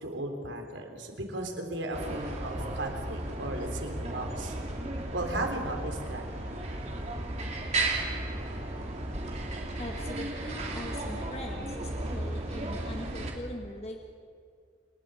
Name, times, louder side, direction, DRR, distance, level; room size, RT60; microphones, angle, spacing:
voice 1, 0.0-4.5 5.1-6.3, right 1 dB, 85° right, 3 dB, 3.7 m, -36 dB
sound 1, 1.9-13.3, right 2 dB, 35° right, 3.0 m, -34 dB
voice 2, 9.8-14.0, left 1 dB, 35° left, 2 dB, 1.8 m, -41 dB
29.5 x 20.0 x 5.0 m, 2.3 s
head